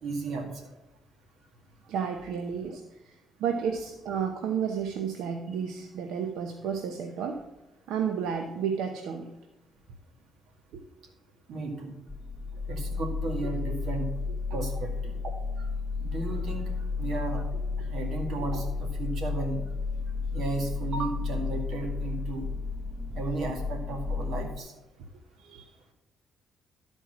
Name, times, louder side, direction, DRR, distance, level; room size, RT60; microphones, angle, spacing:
voice 1, 0.0-0.5 11.5-11.9 12.7-14.1 14.5-15.3 16.0-17.4 17.8-19.6 20.3-22.5 23.1-24.7, right 3 dB, 70° right, 3 dB, 2.1 m, -34 dB
voice 2, 1.9-7.5 7.9-9.3 10.7-10.8 14.5-14.6 17.8-17.9 25.4-25.8, right 7 dB, 90° right, 5 dB, 0.7 m, -32 dB
sound 1, 12.1-24.6, left 4 dB, 5° left, 0.7 m, -32 dB
12.5 x 4.5 x 5.8 m, 1.0 s
cardioid pair, 90°, 0 cm